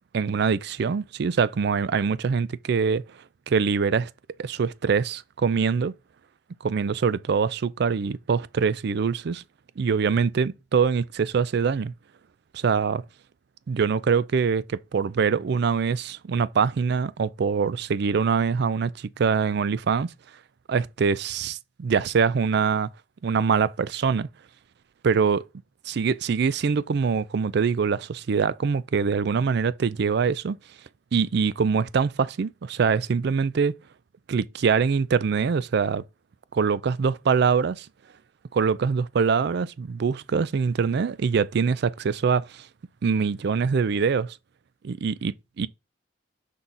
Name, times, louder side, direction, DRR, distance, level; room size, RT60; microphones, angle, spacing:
voice 1, 0.1-3.0 3.5-4.1 4.4-5.9 6.6-9.4 9.8-11.9 12.5-13.0 13.7-20.1 20.7-22.9 23.2-24.3 25.0-25.4 25.9-30.6 31.1-33.7 34.3-36.0 36.5-37.9 38.5-42.7 43.0-44.4 44.8-45.7, right 5 dB, 60° right, 0.4 m, -24 dB
6.0 x 5.6 x 3.8 m
head